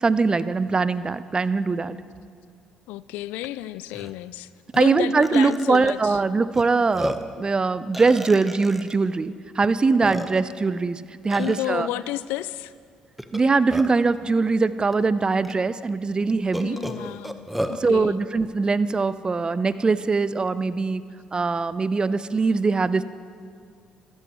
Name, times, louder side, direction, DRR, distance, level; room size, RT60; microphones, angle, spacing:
voice 1, 0.0-2.0 4.8-11.9 13.3-16.8 17.8-21.0 21.3-23.0, right 4 dB, 30° right, 15 dB, 0.7 m, -22 dB
voice 2, 2.9-4.5 4.7-6.2 11.4-12.7 16.6-18.2, left 15 dB, 70° left, 17 dB, 0.3 m, -31 dB
Burping eructation, 3.4-3.5 3.9-4.1 4.7-4.8 5.2-5.9 6.5-6.6 6.9-7.4 7.9-8.9 9.6-9.7 10.0-10.6 11.3-11.7 13.2-14.1 14.9-15.0 15.4-15.5 16.5-17.8, equal, 5° right, 1.2 m, -32 dB
27.0 x 14.0 x 3.1 m, 2.2 s
hypercardioid pair, 50°, 3 cm